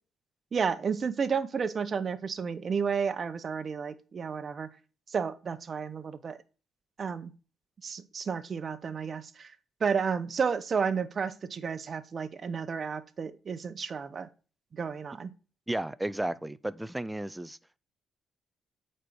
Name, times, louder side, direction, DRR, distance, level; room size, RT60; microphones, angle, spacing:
voice 1, 0.5-4.7 5.1-6.4 7.0-7.3 7.8-9.5 9.8-14.3 14.7-15.3, right 6 dB, 45° right, 0.9 m, -32 dB
voice 2, 15.7-17.6, right 1 dB, 10° right, 0.5 m, -33 dB
8.3 x 4.4 x 6.3 m
cardioid pair, 90°, 0 cm